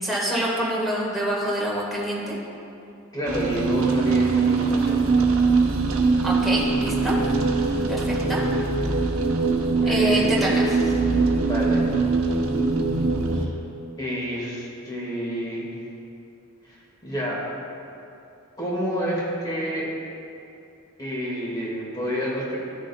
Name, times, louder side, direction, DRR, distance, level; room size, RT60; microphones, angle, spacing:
voice 1, 0.0-2.4 6.2-7.2 7.9-8.5 9.9-10.8, equal, ahead, -5 dB, 1.5 m, -26 dB
voice 2, 3.1-5.1 7.5-7.7 9.8-10.3 11.4-11.9 13.3-13.5 14.0-15.7 16.6-17.4 18.6-19.9 21.0-22.6, equal, 20° left, -5 dB, 1.9 m, -29 dB
sound 1, 3.2-13.5, right 4 dB, 85° right, 0.8 m, -22 dB
14.0 x 6.3 x 2.2 m, 2.7 s
head